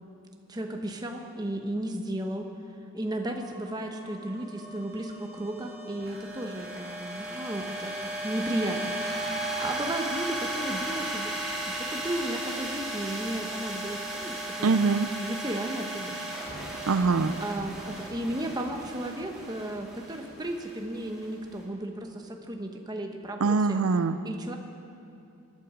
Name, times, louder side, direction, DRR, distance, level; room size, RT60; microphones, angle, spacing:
voice 1, 0.5-2.5 2.9-7.9 8.2-11.4 11.7-16.3 17.4-23.8 24.2-24.6, right 1 dB, 20° right, 3 dB, 1.0 m, -34 dB
sound 1, 3.2-21.5, right 1 dB, ahead, 2.9 m, -36 dB
voice 2, 14.6-15.1 16.9-17.3 23.4-24.2, right 4 dB, 75° right, 11 dB, 0.5 m, -23 dB
19.5 x 12.0 x 5.0 m, 2.6 s
head